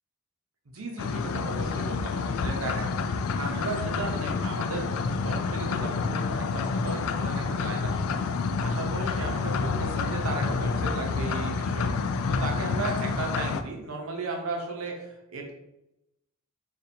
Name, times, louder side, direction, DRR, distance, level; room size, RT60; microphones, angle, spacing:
voice 1, 0.7-8.2 8.6-15.5, right 3 dB, 75° right, 1 dB, 0.8 m, -36 dB
sound 1, 1.0-13.6, left 4 dB, 75° left, 0.3 m, -28 dB
4.2 x 2.5 x 2.7 m, 0.86 s
head